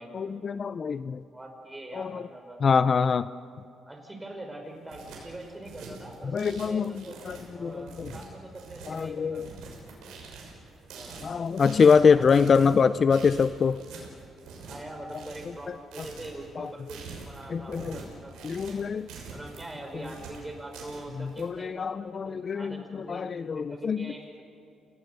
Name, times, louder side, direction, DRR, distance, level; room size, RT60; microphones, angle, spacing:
voice 1, 0.1-1.2 1.9-2.2 2.6-3.3 6.3-8.1 8.9-9.4 11.2-13.8 16.6-16.7 17.5-18.0 18.4-19.1 21.2-24.1, left 6 dB, 45° left, 14 dB, 0.5 m, -24 dB
voice 2, 1.3-2.7 3.9-7.2 7.5-9.5 10.9-11.3 11.9-12.4 14.7-18.6 19.3-23.2 23.5-24.4, right 1 dB, 15° right, 3 dB, 5.3 m, -43 dB
sound 1, 4.6-21.4, right 4 dB, 85° right, 6.0 m, -45 dB
29.5 x 19.0 x 6.8 m, 2.6 s
cardioid pair, 90°, 0 cm